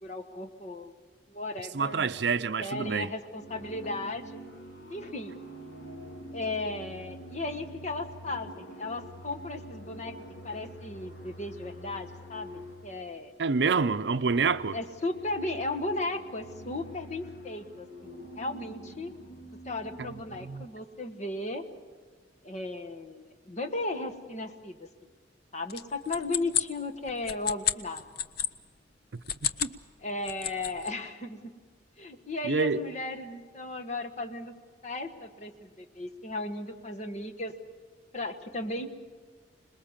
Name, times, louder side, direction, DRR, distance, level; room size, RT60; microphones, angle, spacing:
voice 1, 0.0-0.9 1.3-2.1 2.6-4.4 4.9-5.3 6.3-10.1 10.4-13.3 14.7-19.1 19.6-21.6 22.4-24.9 25.5-28.0 30.0-31.4 32.0-34.5 34.8-37.5 38.1-38.9, left 2 dB, 40° left, 1.4 m, -35 dB
voice 2, 1.7-3.1 13.4-14.8 20.0-20.1 20.4-20.7 29.6-29.7 32.4-32.8, right 4 dB, 65° right, 0.6 m, -27 dB
sound 1, 3.4-13.4 13.9-20.5, equal, 75° left, 2.4 m, -46 dB
sound 2, 25.7-28.5 29.1-29.8 30.1-30.9, left 10 dB, 55° left, 0.7 m, -31 dB
26.5 x 20.5 x 7.3 m
head